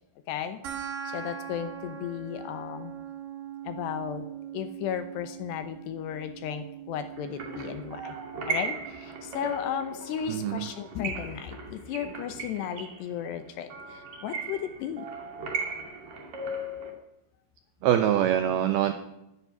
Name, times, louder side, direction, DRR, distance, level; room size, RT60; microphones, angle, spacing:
voice 1, 0.3-0.6 1.1-2.9 3.6-4.3 4.5-8.2 8.5-15.1, left 9 dB, 75° left, 10 dB, 2.7 m, -34 dB
sound 1, 0.6-11.6, right 8 dB, 60° right, 2.6 m, -42 dB
sound 2, 7.2-16.9, right 3 dB, 45° right, 3.3 m, -37 dB
voice 2, 10.3-10.7 17.8-18.9, right 10 dB, 80° right, 9 dB, 2.2 m, -24 dB
12.0 x 10.5 x 10.0 m, 0.88 s
omnidirectional pair, 5.5 m